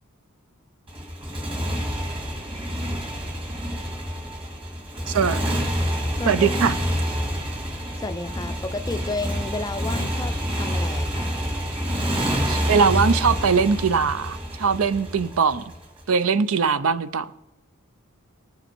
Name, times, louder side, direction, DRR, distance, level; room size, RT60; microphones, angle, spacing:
Motorcycle, 0.9-16.0, equal, 25° right, 2.0 m, -27 dB
voice 1, 5.1-5.6 6.3-6.8 12.5-15.6 16.1-17.3, right 5 dB, 65° right, 0.6 m, -21 dB
voice 2, 6.2-6.5 7.7-11.3, left 2 dB, 15° left, 0.4 m, -32 dB
19.0 x 6.7 x 4.5 m
head